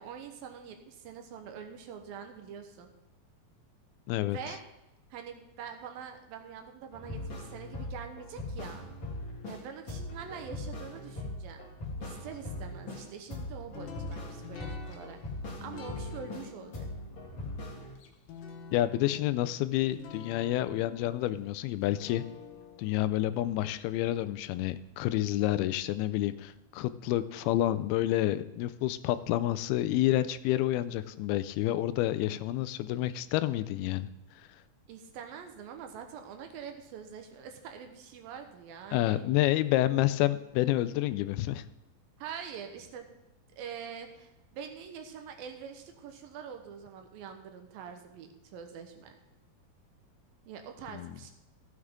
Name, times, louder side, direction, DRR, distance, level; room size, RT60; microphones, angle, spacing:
voice 1, 0.0-2.9 4.3-4.6 5.1-8.9 9.5-11.7 12.0-15.2 15.6-16.9 34.9-39.3 42.2-43.1 43.6-49.2 50.5-51.3, right 7 dB, 75° right, 5 dB, 2.7 m, -44 dB
voice 2, 4.1-4.4 18.7-22.2 22.8-34.1 38.9-41.6 50.9-51.2, left 14 dB, 85° left, 13 dB, 2.5 m, -29 dB
sound 1, 6.9-9.6 9.9-13.0 13.3-16.5 16.7-17.9, left 2 dB, 35° left, 2.9 m, -40 dB
sound 2, 13.7-24.8, left 7 dB, 70° left, 2.4 m, -49 dB
14.5 x 7.8 x 3.6 m, 0.96 s
omnidirectional pair, 4.3 m